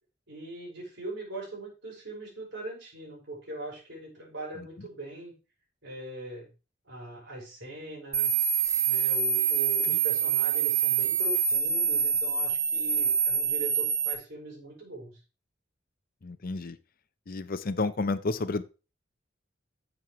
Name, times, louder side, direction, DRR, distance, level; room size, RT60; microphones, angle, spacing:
voice 1, 0.3-5.3 5.8-6.5 6.9-8.4 8.9-15.2, right 2 dB, 65° right, -3 dB, 5.6 m, -41 dB
sound 1, 8.1-14.1, right 6 dB, 15° right, 1.4 m, -26 dB
voice 2, 16.2-16.8 17.3-18.6, left 3 dB, 50° left, 14 dB, 0.6 m, -31 dB
11.0 x 7.4 x 3.1 m, 0.31 s
head